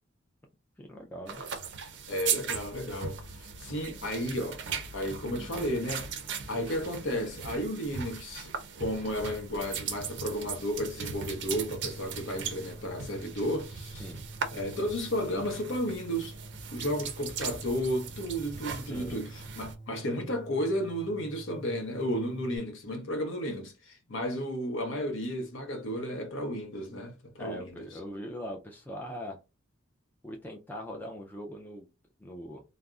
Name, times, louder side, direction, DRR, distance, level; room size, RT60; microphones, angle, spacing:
voice 1, 0.8-1.4 14.0-14.2 18.8-19.2 27.4-29.4 30.2-31.9 32.2-32.6, equal, 10° left, 0.3 m, -41 dB
sound 1, 1.3-19.7, right 6 dB, 55° right, 0.4 m, -38 dB
voice 2, 2.1-4.6 4.9-6.1 6.5-8.5 8.8-14.1 14.5-16.3 16.7-27.9, equal, 70° left, 0.7 m, -33 dB
sound 2, 11.1-22.6, right 2 dB, 45° left, 1.0 m, -47 dB
2.4 x 2.0 x 3.5 m
head